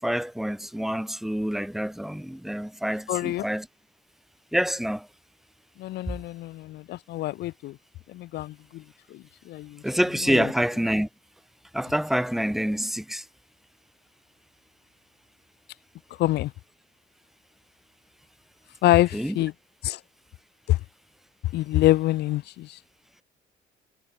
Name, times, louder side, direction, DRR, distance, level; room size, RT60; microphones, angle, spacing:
voice 1, 0.0-3.7 4.5-5.1 9.8-11.1 11.7-13.2 19.1-19.4, equal, ahead, 4.5 m, -27 dB
voice 2, 3.1-3.5 5.8-7.8 8.1-8.8 9.1-9.8 10.3-10.5 16.2-16.5 18.8-19.5 19.8-20.0 20.7-20.8 21.5-22.8, left 16 dB, 75° left, 5.5 m, -25 dB
cardioid pair, 110°, 17 cm